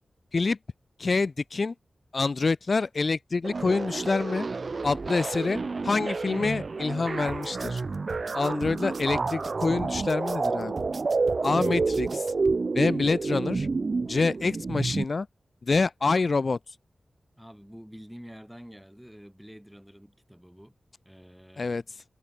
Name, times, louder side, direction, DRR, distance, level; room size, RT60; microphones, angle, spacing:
voice 1, 1.0-1.7 2.1-4.5 4.8-7.8 8.3-10.8 11.4-12.3 12.7-13.7 14.1-15.3 15.6-16.8 21.6-22.0, left 4 dB, 45° left, 0.6 m, -26 dB
sound 1, 3.4-15.0, right 4 dB, 45° right, 0.6 m, -29 dB
sound 2, 7.3-12.6, right 4 dB, 60° right, 3.1 m, -42 dB
voice 2, 8.1-8.4 17.4-20.8 21.1-21.8, equal, ahead, 3.6 m, -48 dB
wide cardioid pair, 125°, 0 cm